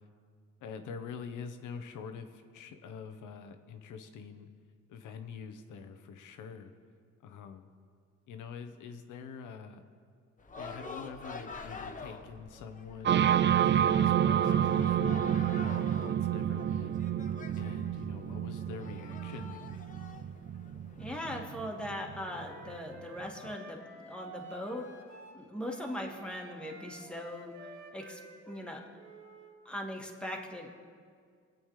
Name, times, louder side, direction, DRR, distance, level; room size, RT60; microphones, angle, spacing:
voice 1, 0.6-4.5 4.9-6.7 7.2-7.7 8.3-9.8 10.6-13.2 13.6-17.0 17.5-19.9, left 6 dB, 85° left, 7 dB, 1.0 m, -45 dB
sound 1, 10.4-21.4, left 4 dB, 25° left, 0.9 m, -47 dB
sound 2, 13.1-22.7, right 10 dB, 40° right, 0.4 m, -29 dB
voice 2, 21.0-24.9 25.3-28.2 28.5-28.8 29.7-30.7, left 1 dB, 5° left, 0 dB, 1.8 m, -40 dB
Wind instrument woodwind instrument, 22.0-29.5, right 1 dB, 65° right, 2.8 m, -51 dB
24.5 x 8.6 x 3.2 m, 2.1 s
cardioid pair, 90°, 30 cm